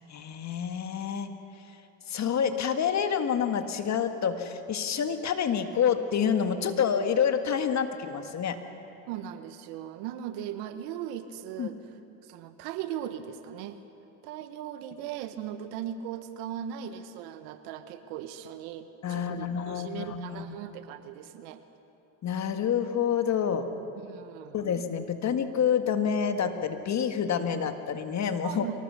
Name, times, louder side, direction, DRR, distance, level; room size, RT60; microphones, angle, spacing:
voice 1, 0.1-1.3 2.1-8.6 11.6-11.7 19.0-20.6 22.2-23.7 24.5-28.7, left 7 dB, 40° left, 8 dB, 1.8 m, -28 dB
voice 2, 9.1-11.8 12.2-13.8 14.2-21.6 24.0-24.6 28.4-28.8, right 10 dB, 75° right, 10 dB, 1.5 m, -38 dB
24.0 x 19.0 x 6.9 m, 3.0 s
supercardioid pair, 90°, 40 cm